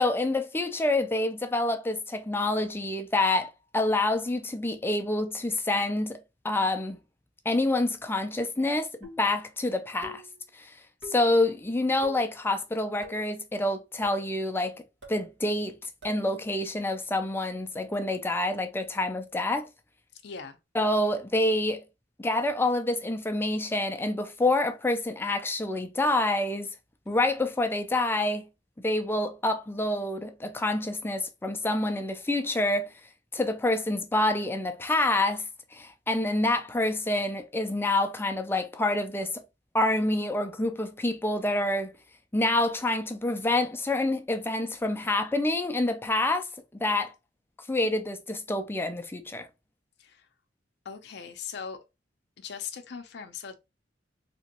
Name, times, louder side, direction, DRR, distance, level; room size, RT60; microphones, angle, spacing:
voice 1, 0.0-6.2 6.4-7.0 7.5-8.9 9.2-10.2 10.5-10.7 11.1-14.7 15.1-19.7 20.7-21.8 22.2-26.7 27.1-28.5 28.8-32.9 33.3-35.5 35.7-39.4 39.7-41.9 42.3-46.5 46.8-47.1 47.7-49.5, left 2 dB, 10° left, 0.4 m, -27 dB
sound 1, 9.0-9.4 10.0-10.4 11.0-11.3 12.0-12.3 13.0-13.4 14.0-14.3 15.0-15.3 16.0-16.3, left 3 dB, 85° right, 1.5 m, -45 dB
voice 2, 20.1-20.6 50.0-50.3 50.8-51.8 52.4-53.6, left 6 dB, 65° left, 0.5 m, -39 dB
3.4 x 2.9 x 2.8 m
head